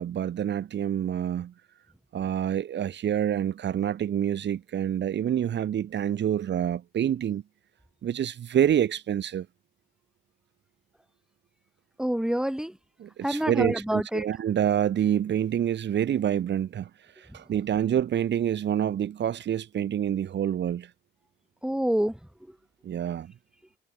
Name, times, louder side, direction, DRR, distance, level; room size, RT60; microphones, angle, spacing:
voice 1, 0.0-1.5 2.1-7.4 8.0-9.5 13.0-16.9 17.2-20.9 22.8-23.3, right 10 dB, 60° right, 2.6 m, -27 dB
voice 2, 12.0-12.8 13.2-14.3 21.6-22.2 22.5-22.6, equal, 5° right, 5.0 m, -27 dB
cardioid pair, 90°, 20 cm